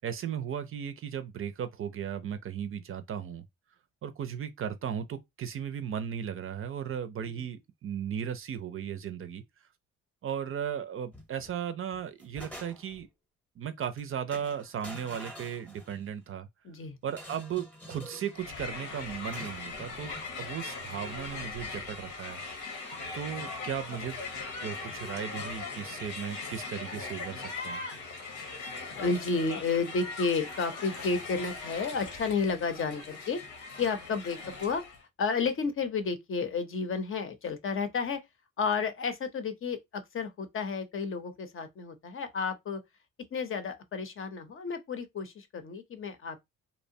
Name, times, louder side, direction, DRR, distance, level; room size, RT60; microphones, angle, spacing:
voice 1, 0.0-3.4 4.0-9.4 10.2-13.1 13.6-16.5 17.0-22.7 23.1-24.2 24.6-27.8, right 8 dB, 45° right, 0.4 m, -36 dB
sound 1, 11.1-11.5 11.9-13.1 13.8-14.0 14.3-16.1 17.1-18.4 19.3-20.3, equal, 5° left, 0.7 m, -47 dB
voice 2, 16.6-17.0 29.0-34.8 35.2-38.2 38.6-42.8 43.3-46.4, left 4 dB, 45° left, 0.6 m, -32 dB
Crowd, 18.3-35.0, left 4 dB, 85° left, 0.9 m, -40 dB
2.8 x 2.1 x 2.6 m
cardioid pair, 90°, 30 cm